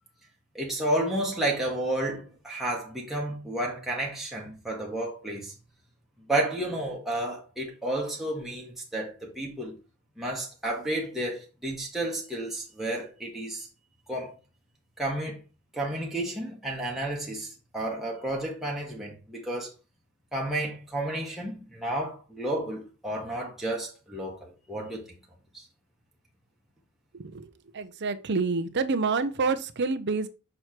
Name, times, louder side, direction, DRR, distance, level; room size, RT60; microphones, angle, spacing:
voice 1, 0.5-5.5 6.3-9.8 10.2-13.7 14.1-14.3 15.0-15.4 15.7-19.7 20.3-25.2, right 1 dB, ahead, 1.4 m, -31 dB
voice 2, 27.1-30.3, right 4 dB, 50° right, 0.7 m, -28 dB
6.3 x 4.5 x 4.4 m
head